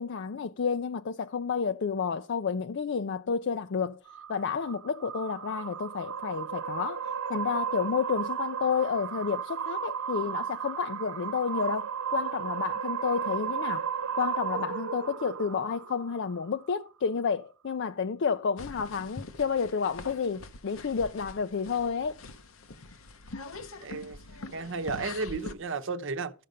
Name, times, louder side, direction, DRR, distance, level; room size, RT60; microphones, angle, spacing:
voice 1, 0.0-4.0 4.3-13.9 14.2-22.2, left 6 dB, 60° left, 0.5 m, -30 dB
sound 1, 4.1-16.6, right 7 dB, 85° right, 0.5 m, -34 dB
sound 2, 18.6-25.5, left 3 dB, 85° left, 0.9 m, -44 dB
voice 2, 23.8-24.2 24.5-26.3, right 4 dB, 65° right, 0.8 m, -33 dB
13.0 x 6.7 x 5.1 m
head